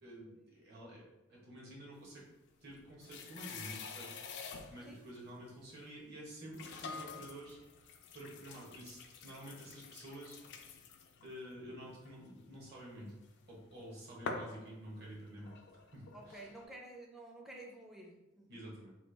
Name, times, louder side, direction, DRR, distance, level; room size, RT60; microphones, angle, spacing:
voice 1, 0.0-2.3 2.6-4.4 4.7-10.4 11.2-13.1 13.5-15.6 15.9-16.5 18.5-18.9, right 1 dB, 55° right, -4 dB, 1.1 m, -50 dB
sound 1, 2.4-5.0 5.8-5.9 6.5-13.8 14.3-16.6, left 4 dB, 60° left, 0.3 m, -48 dB
voice 2, 16.1-18.5, right 1 dB, ahead, -2 dB, 0.5 m, -51 dB
3.2 x 2.3 x 3.3 m, 1.0 s
head